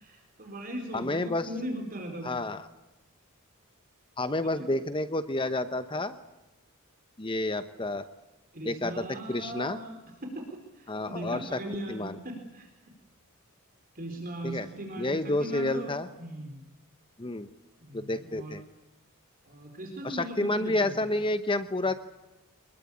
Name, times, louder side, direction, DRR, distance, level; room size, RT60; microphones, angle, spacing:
voice 1, 0.0-2.3 4.4-4.5 8.5-12.7 13.9-15.9 16.2-16.6 17.8-18.6 19.4-20.9, right 1 dB, 40° right, 3 dB, 4.2 m, -39 dB
voice 2, 0.9-1.5 2.2-2.6 4.2-6.2 7.2-8.0 8.6-9.8 10.9-11.6 11.9-12.2 14.4-14.7 15.0-16.1 17.2-17.5 17.9-18.6 20.0-21.9, left 2 dB, 25° left, 11 dB, 0.9 m, -30 dB
25.0 x 21.0 x 8.6 m, 1.0 s
head